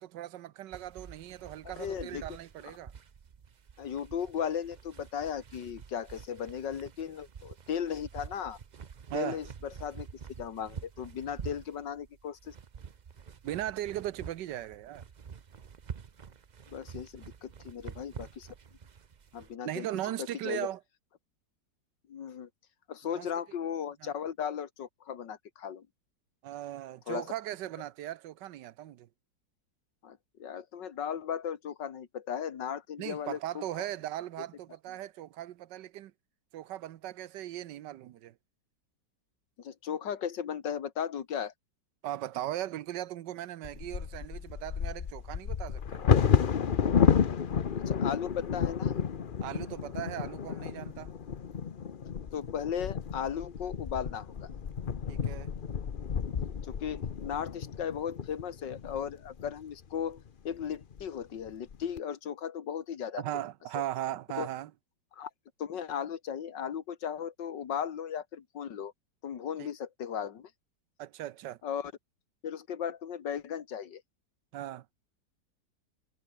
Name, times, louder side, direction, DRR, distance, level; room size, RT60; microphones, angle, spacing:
voice 1, 0.0-2.9 9.1-9.4 13.4-15.0 19.6-20.8 23.1-23.3 24.0-24.1 26.4-29.1 33.0-36.1 36.5-38.3 42.0-46.1 49.4-51.1 55.1-55.5 63.2-64.7 69.6-69.7 71.0-71.6 74.5-74.8, right 13 dB, 80° right, 1.4 m, -38 dB
sound 1, 0.7-19.5, right 6 dB, 50° right, 0.5 m, -48 dB
voice 2, 1.8-2.2 3.8-8.6 9.1-10.1 10.4-12.6 16.7-18.5 19.3-19.9 20.2-20.7 22.1-22.5 22.9-25.9 27.1-27.3 30.0-33.9 39.6-41.5 47.9-48.9 52.3-54.5 56.6-63.2 63.7-63.8 64.4-64.5 65.1-65.3 65.6-68.9 69.2-70.5 71.6-71.9 72.4-74.0, left 8 dB, 90° left, 2.1 m, -36 dB
Bird vocalization bird call bird song / Wind / Thunder, 43.6-59.5 60.2-60.3 60.6-61.0 61.5-62.0, left 7 dB, 40° left, 0.7 m, -31 dB
omnidirectional pair, 1.9 m